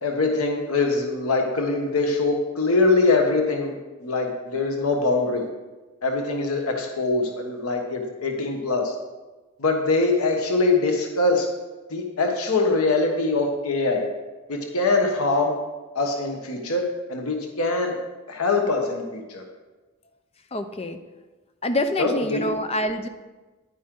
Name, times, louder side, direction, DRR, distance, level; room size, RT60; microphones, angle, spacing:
voice 1, 0.0-3.7 4.0-5.5 6.0-8.9 9.6-11.5 11.9-14.1 14.5-15.6 15.9-18.0 18.3-19.4 22.0-22.5, left 3 dB, 85° left, 3 dB, 1.2 m, -23 dB
voice 2, 20.5-21.0 21.6-23.1, left 1 dB, 25° left, 8 dB, 0.6 m, -26 dB
10.0 x 9.5 x 3.8 m, 1.2 s
head